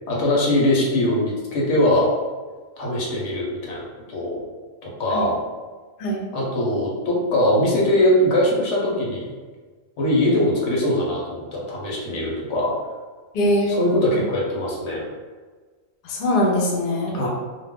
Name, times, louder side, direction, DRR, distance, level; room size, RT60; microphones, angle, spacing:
voice 1, 0.1-2.1 2.8-4.4 4.8-5.4 6.3-9.3 10.0-12.7 13.7-15.1 17.1-17.3, left 1 dB, 90° left, -4 dB, 1.1 m, -21 dB
voice 2, 13.3-13.8 14.1-14.2 16.0-17.2, left 1 dB, 55° left, -2 dB, 0.6 m, -22 dB
2.4 x 2.2 x 3.5 m, 1.4 s
omnidirectional pair, 1.2 m